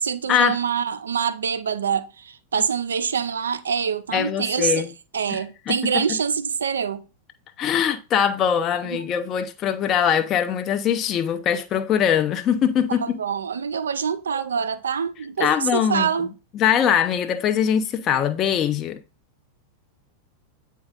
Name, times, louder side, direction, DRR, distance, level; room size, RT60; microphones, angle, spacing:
voice 1, 0.0-4.9 5.1-7.0 8.9-9.1 12.9-16.3, right 7 dB, 70° right, 0.6 m, -25 dB
voice 2, 4.1-4.9 5.3-5.4 5.7-5.8 7.6-13.2 15.4-16.1 16.5-19.0, left 8 dB, 30° left, 0.7 m, -22 dB
8.8 x 4.6 x 3.8 m
figure-of-eight pair, 90°, 0 cm